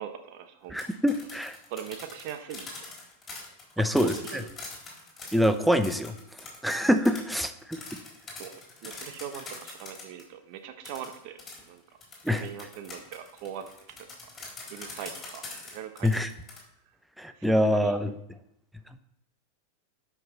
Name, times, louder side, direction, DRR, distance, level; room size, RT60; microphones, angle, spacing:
voice 1, 0.0-0.8 1.7-2.8 3.8-4.5 8.4-11.4 11.7-11.8 12.3-13.6 14.0-14.1 14.7-16.1 17.4-17.9, right 9 dB, 50° right, 8 dB, 1.0 m, -40 dB
sound 1, 0.6-10.3 10.8-16.6, left 3 dB, 20° left, 4.2 m, -43 dB
voice 2, 0.7-1.6 3.8-4.4 5.3-6.2 6.6-7.8 12.2-12.5 16.0-16.3 17.2-18.1, equal, ahead, 10 dB, 0.8 m, -25 dB
12.5 x 5.8 x 4.3 m, 0.79 s
figure-of-eight pair, 90°, 0 cm